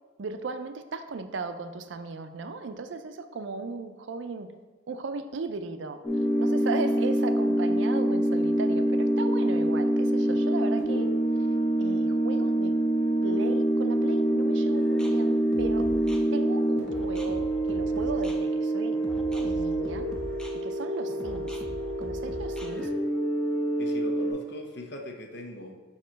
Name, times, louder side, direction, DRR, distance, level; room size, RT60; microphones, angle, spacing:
voice 1, 0.2-4.5 4.9-6.0 6.4-11.1 11.8-12.8 13.2-15.9 16.3-20.1 20.5-21.6 22.0-22.9, right 4 dB, 65° right, 9 dB, 0.4 m, -36 dB
sound 1, 6.0-24.3, right 1 dB, 30° left, 1.3 m, -26 dB
sound 2, 14.7-22.9, equal, 5° left, 0.4 m, -41 dB
voice 2, 23.8-25.9, left 1 dB, 55° left, 4 dB, 0.7 m, -41 dB
6.7 x 3.0 x 5.0 m, 1.3 s
head